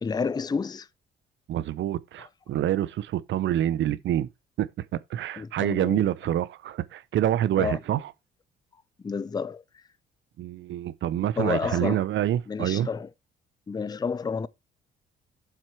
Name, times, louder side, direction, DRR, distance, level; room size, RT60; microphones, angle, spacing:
voice 1, 0.0-0.9 2.2-2.3 5.3-6.1 7.6-7.8 9.0-9.8 11.4-12.1 12.5-13.1 13.7-14.5, left 5 dB, 20° left, 0.5 m, -30 dB
voice 2, 1.5-4.3 4.6-8.0 10.4-12.9, right 12 dB, 70° right, 0.7 m, -27 dB
7.6 x 4.6 x 5.7 m
cardioid pair, 90°, 20 cm